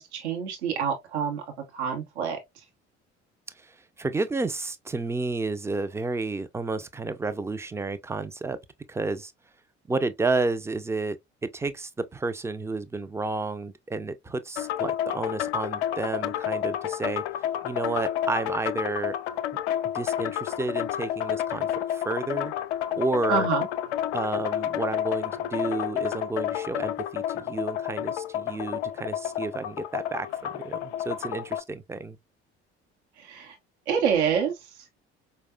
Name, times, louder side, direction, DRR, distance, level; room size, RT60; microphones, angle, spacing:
voice 1, 0.0-1.4 1.7-2.6 23.3-23.7 33.2-33.6 33.9-34.9, right 6 dB, 80° right, 0.8 m, -27 dB
voice 2, 3.6-8.6 8.9-9.3 9.9-11.2 11.4-17.2 17.6-19.2 19.9-22.5 22.9-23.5 24.1-32.2, right 3 dB, 10° right, 0.4 m, -31 dB
sound 1, 14.6-31.6, left 11 dB, 75° left, 0.5 m, -30 dB
4.6 x 2.1 x 2.3 m
figure-of-eight pair, 55°, 34 cm